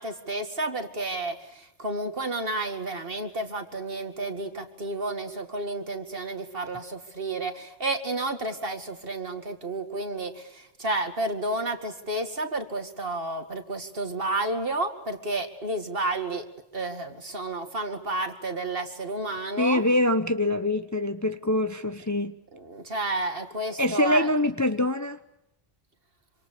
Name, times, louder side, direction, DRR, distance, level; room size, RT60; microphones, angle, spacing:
voice 1, 0.0-16.5 16.7-19.8 22.5-24.3, right 2 dB, 50° right, 2.5 m, -31 dB
voice 2, 19.6-22.4 23.8-25.2, left 1 dB, 15° left, 0.9 m, -24 dB
26.5 x 25.5 x 6.9 m
omnidirectional pair, 1.2 m